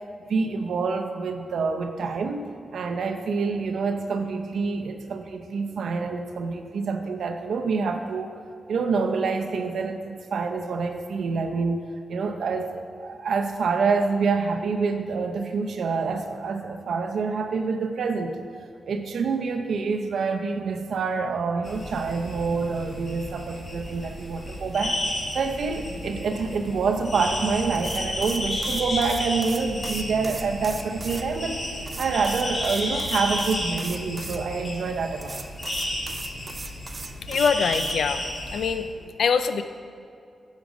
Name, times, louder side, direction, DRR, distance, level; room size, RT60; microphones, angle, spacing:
voice 1, 0.2-8.3 8.7-11.8 12.1-18.4 18.9-25.0 25.3-31.6 32.0-35.4, right 4 dB, 80° right, 5 dB, 0.7 m, -27 dB
sound 1, 21.6-38.7, left 1 dB, 55° left, 2.2 m, -32 dB
sound 2, 27.7-31.3 31.9-34.4 35.2-38.0, right 3 dB, 35° right, 0.5 m, -38 dB
voice 2, 37.3-38.2 38.5-39.6, left 6 dB, 85° left, 10 dB, 0.4 m, -24 dB
10.5 x 5.1 x 5.1 m, 2.5 s
cardioid pair, 80°, 0 cm